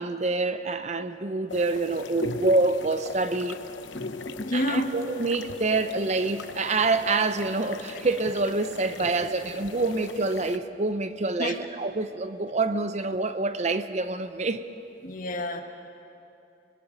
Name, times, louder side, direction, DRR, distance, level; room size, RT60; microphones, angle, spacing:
voice 1, 0.0-3.6 4.5-14.6, right 3 dB, 40° right, 0.7 m, -26 dB
sound 1, 1.5-10.6, left 4 dB, 90° left, 0.8 m, -42 dB
voice 2, 3.9-5.0 9.0-9.3 11.4-11.5 15.0-15.6, left 1 dB, 45° left, 1.4 m, -30 dB
29.0 x 20.5 x 5.2 m
head